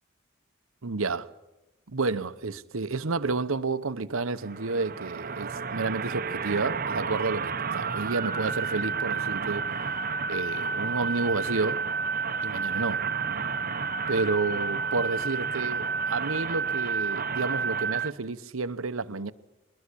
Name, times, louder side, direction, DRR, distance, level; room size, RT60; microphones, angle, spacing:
voice 1, 0.8-1.3 1.9-9.8 10.3-11.8 12.4-13.1 14.1-19.3, right 3 dB, 85° right, 1.0 m, -30 dB
sound 1, 4.4-18.1, right 5 dB, 45° right, 0.9 m, -30 dB
22.5 x 21.0 x 8.5 m
head